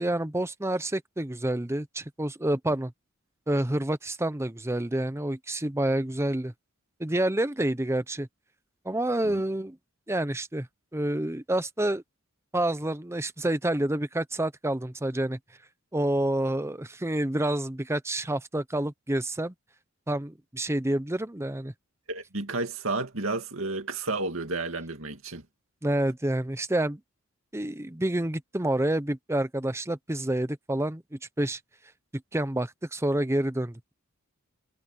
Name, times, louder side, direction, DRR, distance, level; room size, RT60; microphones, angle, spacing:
voice 1, 0.0-2.9 3.5-6.5 7.0-8.3 8.8-9.8 10.1-10.7 10.9-12.0 12.5-15.4 15.9-19.5 20.1-21.7 25.8-27.0 27.5-31.6 32.3-33.9, right 1 dB, 15° right, 0.8 m, -28 dB
voice 2, 22.1-25.4, right 3 dB, 80° right, 2.3 m, -31 dB
head